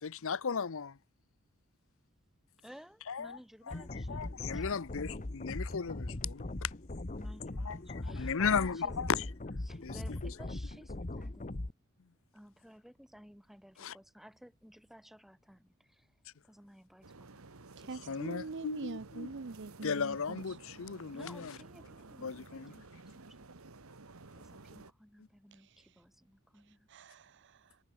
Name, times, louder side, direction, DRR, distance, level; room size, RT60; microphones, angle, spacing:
voice 1, 0.0-1.0 3.1-3.4 3.7-6.7 7.6-9.3 9.8-10.0 10.2-10.3 13.8-13.9 18.1-19.3 19.8-21.5 22.2-22.8, left 6 dB, 65° left, 0.7 m, -36 dB
voice 2, 2.6-4.7 7.1-9.2 9.6-11.6 12.3-16.1 16.4-17.4 17.8-18.5 21.1-22.4 22.7-23.5 24.3-26.9, equal, ahead, 1.8 m, -56 dB
sound 1, 3.7-11.7, left 2 dB, 35° left, 1.0 m, -40 dB
sound 2, 17.0-24.9, right 3 dB, 80° right, 1.6 m, -53 dB
voice 3, 17.8-20.4 25.5-25.8 26.9-27.8, right 4 dB, 55° right, 0.7 m, -44 dB
head